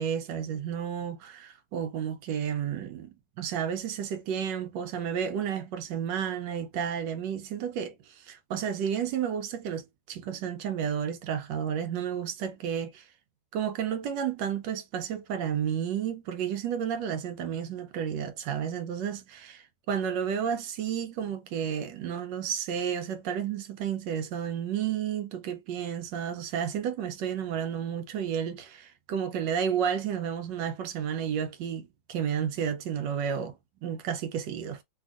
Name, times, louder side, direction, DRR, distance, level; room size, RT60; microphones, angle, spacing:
voice 1, 0.0-3.1 3.4-13.0 13.5-33.5 33.8-34.8, right 8 dB, 75° right, 1.1 m, -31 dB
3.4 x 2.4 x 2.4 m
omnidirectional pair, 2.3 m